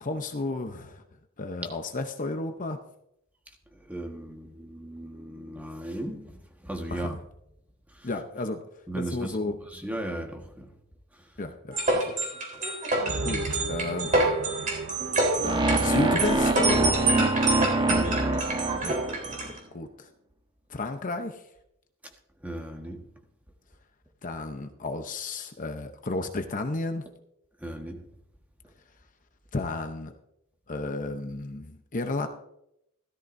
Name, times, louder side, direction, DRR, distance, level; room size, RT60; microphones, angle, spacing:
voice 1, 0.0-1.0 1.4-2.8 6.9-7.2 8.0-8.6 8.9-9.6 11.4-12.0 13.2-14.2 15.4-17.3 18.8-19.0 19.3-19.4 19.7-20.1 20.7-21.4 24.2-27.0 29.5-30.1 30.7-32.3, left 2 dB, 40° left, 0.8 m, -32 dB
voice 2, 3.7-7.2 7.9-8.1 8.9-10.7 11.1-11.4 17.9-18.3 22.0-22.1 22.4-23.1 27.6-28.1, right 1 dB, 5° right, 1.4 m, -37 dB
sound 1, 11.7-19.6, right 2 dB, 40° right, 3.9 m, -27 dB
sound 2, 13.0-19.1, right 3 dB, 70° right, 0.7 m, -38 dB
sound 3, 15.4-19.5, right 2 dB, 20° right, 1.2 m, -25 dB
16.0 x 13.5 x 2.6 m
head